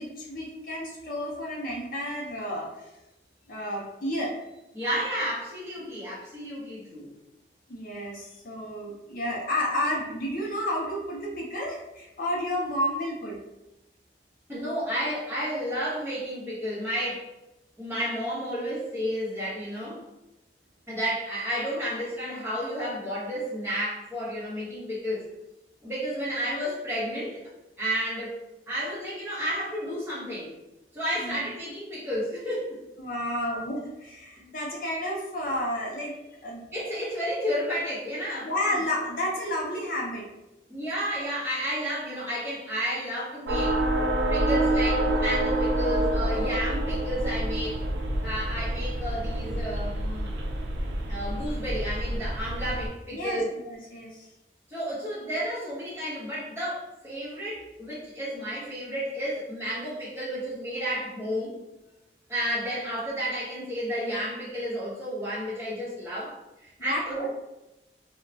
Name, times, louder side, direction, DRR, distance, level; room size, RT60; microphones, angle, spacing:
voice 1, 0.0-2.9 3.5-4.3 7.7-13.4 31.2-31.4 33.0-36.6 38.4-40.3 53.1-54.3 66.8-67.3, left 1 dB, 50° left, -3 dB, 0.5 m, -31 dB
voice 2, 4.7-7.1 14.5-17.3 17.8-20.0 20.9-25.3 25.8-27.4 27.8-30.5 30.9-32.8 33.3-33.5 34.4-34.5 36.7-38.5 40.7-43.8 44.3-47.9 48.2-50.3 51.1-53.5 54.7-61.5 62.3-66.4 66.6-67.3, equal, 15° right, -9 dB, 1.0 m, -31 dB
sound 1, 43.5-52.9, right 1 dB, 80° right, 0.4 m, -27 dB
2.2 x 2.1 x 3.8 m, 0.93 s
head